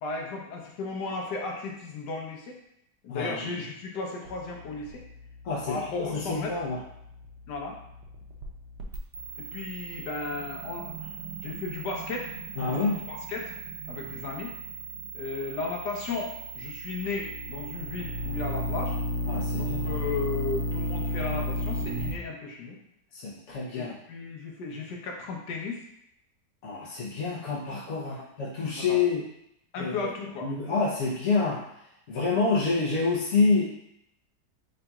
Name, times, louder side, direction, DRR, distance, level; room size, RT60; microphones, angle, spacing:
voice 1, 0.0-2.6 3.0-5.0 5.7-6.6 7.5-7.8 9.4-11.1 11.4-12.3 12.6-12.8 13.1-13.5 13.9-14.5 15.1-19.0 19.5-22.8 23.7-25.8 28.0-28.3 28.7-29.0 29.7-30.5, left 3 dB, 75° left, 0 dB, 1.3 m, -35 dB
voice 2, 3.1-3.5 5.4-6.8 12.6-13.0 19.3-20.0 23.1-23.9 26.6-29.2 29.8-30.1 30.4-31.6 32.1-33.6, left 4 dB, 55° left, -7 dB, 0.9 m, -27 dB
sound 1, 4.3-22.1, equal, 80° right, 1.3 m, -35 dB
4.0 x 3.8 x 2.3 m, 0.77 s
omnidirectional pair, 1.9 m